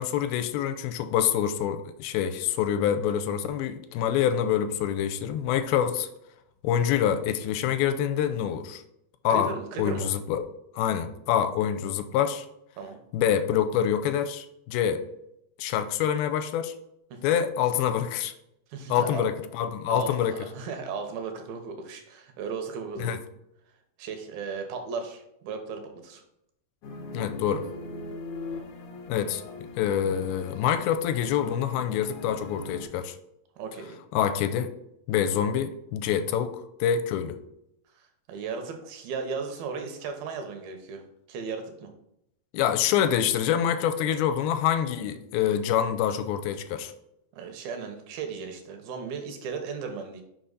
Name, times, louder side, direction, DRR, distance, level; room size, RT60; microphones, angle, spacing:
voice 1, 0.0-6.1 6.6-8.8 9.2-9.5 9.8-10.4 10.7-12.5 13.1-15.0 15.6-16.7 17.2-18.3 18.9-20.3 23.0-23.2 27.1-27.6 29.1-29.4 29.8-33.1 34.1-34.7 35.1-37.4 42.5-46.9, left 9 dB, 85° left, 10 dB, 2.4 m, -26 dB
voice 2, 9.3-10.1 12.8-13.0 17.1-17.2 18.7-19.3 19.9-23.2 24.0-26.2 33.6-34.0 38.0-41.9 47.3-50.2, right 5 dB, 80° right, 5 dB, 2.7 m, -36 dB
sound 1, 26.8-32.9, left 2 dB, 70° left, 1.8 m, -41 dB
6.2 x 5.5 x 4.0 m, 0.79 s
omnidirectional pair, 4.4 m